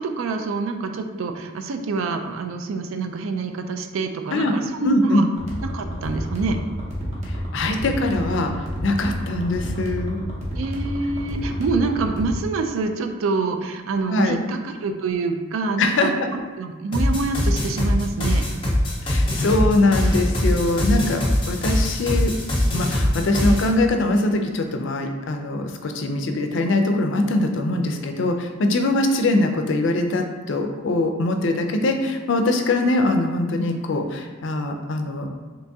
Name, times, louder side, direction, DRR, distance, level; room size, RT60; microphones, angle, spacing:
voice 1, 0.0-5.2 5.6-6.6 10.5-18.5, right 4 dB, 80° right, 6 dB, 0.4 m, -26 dB
voice 2, 4.8-5.3 7.3-10.2 14.1-14.4 15.8-16.3 19.0-22.3 22.7-35.3, left 2 dB, 60° left, 5 dB, 0.4 m, -22 dB
sound 1, 5.4-12.4, equal, 35° right, 0.7 m, -30 dB
sound 2, 16.9-23.7, left 1 dB, 25° left, 0.8 m, -22 dB
3.4 x 2.9 x 2.7 m, 1.4 s
head